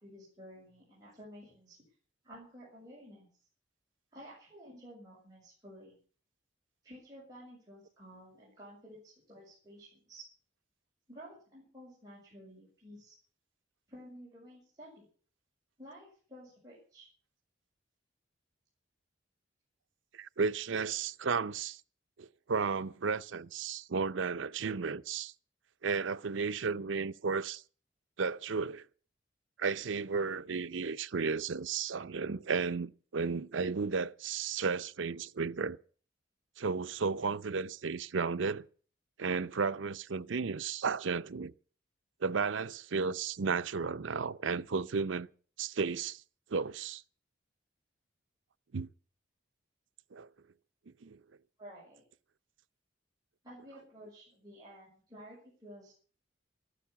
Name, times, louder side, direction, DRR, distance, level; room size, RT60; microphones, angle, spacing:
voice 1, 0.0-1.8 2.2-3.3 4.1-6.0 6.8-10.2 11.1-13.1 13.9-15.0 15.8-17.1 51.6-52.0 53.4-55.9, equal, 20° right, 6.3 m, -52 dB
voice 2, 20.2-21.8 22.2-25.3 25.8-27.6 28.2-28.8 29.6-35.8 36.6-38.7 39.2-41.5 42.2-45.3 45.6-46.2 46.5-47.0 48.7-48.9 50.1-50.3 51.0-51.2, right 5 dB, 85° right, 0.6 m, -33 dB
14.0 x 12.0 x 7.1 m
head